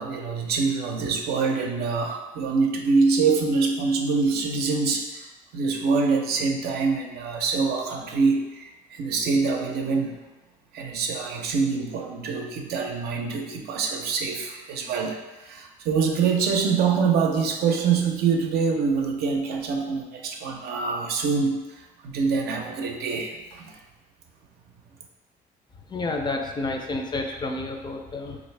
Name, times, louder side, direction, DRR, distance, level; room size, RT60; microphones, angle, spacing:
voice 1, 0.0-5.3 5.5-10.2 10.7-23.8, right 5 dB, 70° right, 2 dB, 0.6 m, -25 dB
voice 2, 25.9-28.4, left 2 dB, 25° left, 2 dB, 0.4 m, -30 dB
3.4 x 2.6 x 3.2 m, 1.1 s
cardioid pair, 110°, 17 cm